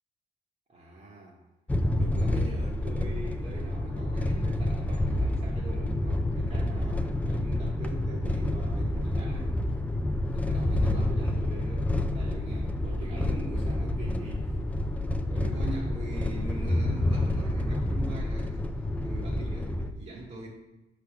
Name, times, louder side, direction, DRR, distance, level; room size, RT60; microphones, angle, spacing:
voice 1, 0.7-1.4 2.0-9.5 10.3-14.6 15.2-18.6 19.0-20.5, right 2 dB, 40° right, -4 dB, 1.1 m, -43 dB
sound 1, 1.7-19.9, left 1 dB, 10° left, 0.4 m, -28 dB
6.0 x 3.5 x 5.8 m, 1.1 s
cardioid pair, 115°, 18 cm